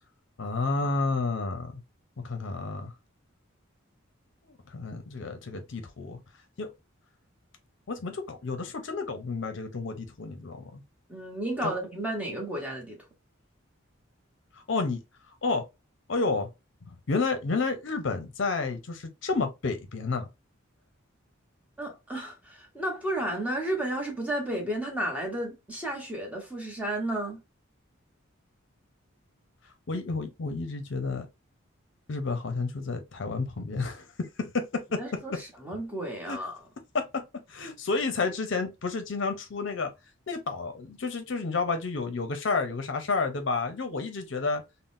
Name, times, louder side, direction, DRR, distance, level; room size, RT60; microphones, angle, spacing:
voice 1, 0.4-1.8 2.2-2.9 4.4-6.2 6.6-6.7 7.9-10.8 11.6-11.7 14.5-15.0 15.4-15.6 16.1-16.5 16.9-20.3 29.9-31.3 32.1-35.0 36.3-36.4 36.9-37.2 37.5-39.9 40.3-44.6, left 3 dB, 60° left, 0.5 m, -30 dB
voice 2, 11.1-13.0 21.8-27.4 35.0-36.6, right 1 dB, 5° right, 0.8 m, -32 dB
3.6 x 2.0 x 2.5 m
head